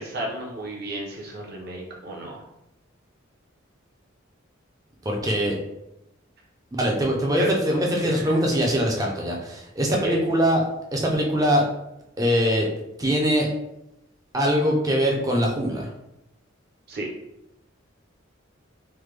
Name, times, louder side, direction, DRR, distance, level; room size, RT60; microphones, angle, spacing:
voice 1, 0.0-2.4 7.3-8.3 9.9-10.2 16.9-17.1, right 2 dB, 50° right, -1 dB, 0.7 m, -33 dB
voice 2, 5.0-5.6 6.7-10.6 10.9-11.6 12.2-12.7 13.0-13.5 14.3-15.9, equal, 15° right, 0 dB, 0.5 m, -22 dB
3.2 x 2.1 x 3.2 m, 0.87 s
head